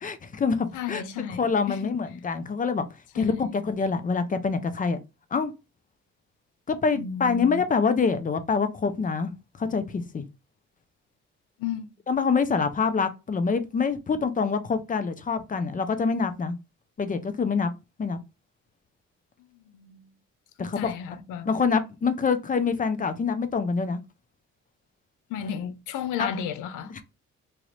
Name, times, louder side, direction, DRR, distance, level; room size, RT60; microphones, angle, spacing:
voice 1, 0.0-1.0 1.4-2.9 3.1-5.0 5.3-5.5 6.7-10.2 12.1-16.5 17.0-17.7 18.0-18.2 20.6-24.0 26.2-26.3 26.9-27.0, left 5 dB, 30° left, 0.5 m, -26 dB
voice 2, 0.7-1.8 3.2-3.6 6.9-7.6 11.6-11.9 19.7-20.1 20.6-21.5 25.3-26.9, left 8 dB, 85° left, 0.5 m, -33 dB
3.0 x 2.4 x 3.1 m
cardioid pair, 90°, 30 cm